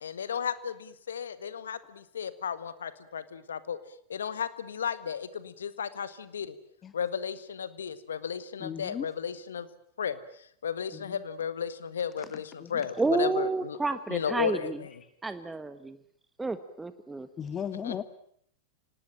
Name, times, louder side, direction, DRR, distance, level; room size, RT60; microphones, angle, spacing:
voice 1, 0.0-3.8 4.1-6.6 6.9-9.7 10.0-13.8 14.1-14.9 17.8-18.0, left 7 dB, 80° left, 14 dB, 1.7 m, -34 dB
voice 2, 8.6-9.0 11.1-11.2 12.6-12.7 17.4-18.0, left 8 dB, 30° left, 14 dB, 1.1 m, -35 dB
voice 3, 13.0-14.8 15.2-16.0 16.4-17.3, right 3 dB, 10° right, 11 dB, 1.4 m, -30 dB
26.5 x 19.0 x 8.9 m, 0.66 s
hypercardioid pair, 95°, 0 cm